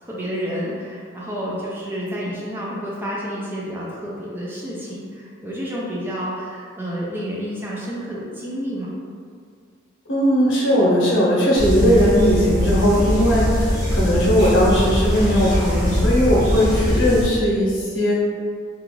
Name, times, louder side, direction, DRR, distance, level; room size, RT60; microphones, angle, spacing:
voice 1, 0.0-9.0, equal, 10° right, -6 dB, 0.3 m, -30 dB
voice 2, 10.1-18.2, equal, 80° left, -5 dB, 0.8 m, -18 dB
sound 1, 11.6-17.3, equal, 40° right, 1.1 m, -21 dB
2.4 x 2.3 x 3.1 m, 2.1 s
head